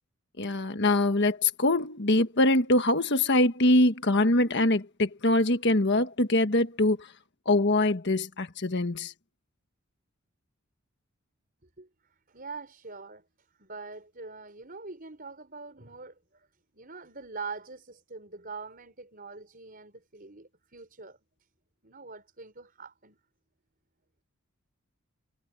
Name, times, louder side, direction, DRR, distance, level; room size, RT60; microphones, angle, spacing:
voice 1, 0.4-7.1 7.4-9.1, left 2 dB, 50° left, 1.5 m, -23 dB
voice 2, 11.6-16.5 16.7-21.2 21.8-23.2, right 4 dB, 40° right, 5.3 m, -44 dB
head